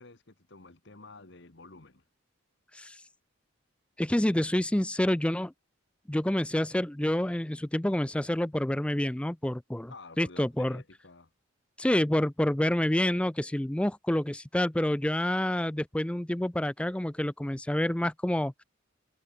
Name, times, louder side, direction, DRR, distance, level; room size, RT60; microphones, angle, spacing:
voice 1, 0.0-2.0 9.9-11.3, left 3 dB, 55° left, 1.6 m, -50 dB
voice 2, 4.0-5.5 6.1-10.8 11.8-18.5, left 1 dB, 5° left, 0.4 m, -28 dB
head